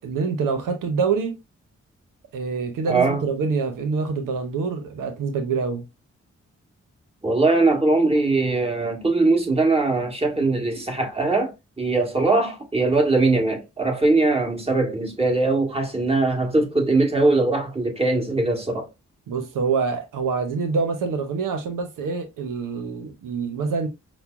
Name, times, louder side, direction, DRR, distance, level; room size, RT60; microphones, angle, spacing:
voice 1, 0.0-1.4 2.3-5.8 19.3-23.9, right 5 dB, 85° right, 0.7 m, -26 dB
voice 2, 2.9-3.3 7.2-18.9, right 3 dB, 20° right, 1.6 m, -21 dB
5.6 x 2.1 x 2.3 m
supercardioid pair, 40°, 31 cm